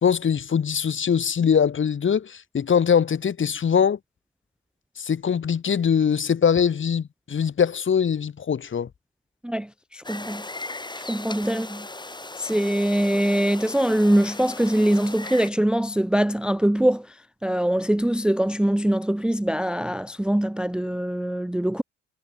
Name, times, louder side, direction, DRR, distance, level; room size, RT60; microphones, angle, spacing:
voice 1, 0.0-4.0 5.0-8.9, left 7 dB, 40° left, 1.5 m, -22 dB
voice 2, 9.9-10.4 11.1-11.9 12.4-17.0 17.4-21.8, right 1 dB, 5° right, 0.6 m, -23 dB
sound 1, 10.0-15.5, left 2 dB, 15° left, 4.2 m, -37 dB
cardioid pair, 90°, 30 cm